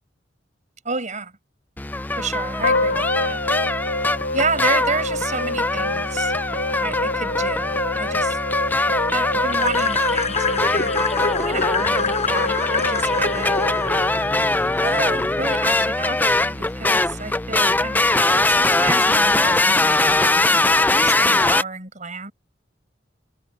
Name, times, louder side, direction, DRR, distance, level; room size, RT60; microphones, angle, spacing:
voice 1, 0.8-1.3 2.2-3.4 4.3-6.3 6.8-8.4 9.1-11.0 11.4-13.6 14.8-20.6 21.0-22.3, right 4 dB, 45° right, 5.4 m, -30 dB
sound 1, 1.8-21.6, left 2 dB, 10° left, 0.4 m, -21 dB
sound 2, 2.6-14.9, left 2 dB, 55° left, 1.0 m, -28 dB
sound 3, 9.5-15.2, left 5 dB, 35° left, 7.1 m, -27 dB
head